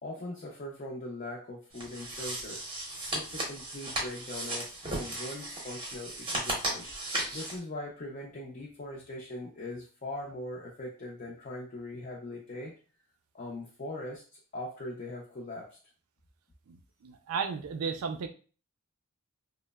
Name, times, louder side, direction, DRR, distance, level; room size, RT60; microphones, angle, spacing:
voice 1, 0.0-2.6 3.1-6.9 7.3-12.7 13.3-15.8, left 1 dB, 35° left, -2 dB, 0.4 m, -41 dB
sound 1, 1.7-7.6, right 1 dB, 25° right, 0.6 m, -36 dB
voice 2, 17.0-18.3, right 5 dB, 90° right, 7 dB, 0.4 m, -34 dB
2.9 x 2.0 x 2.2 m, 0.37 s
head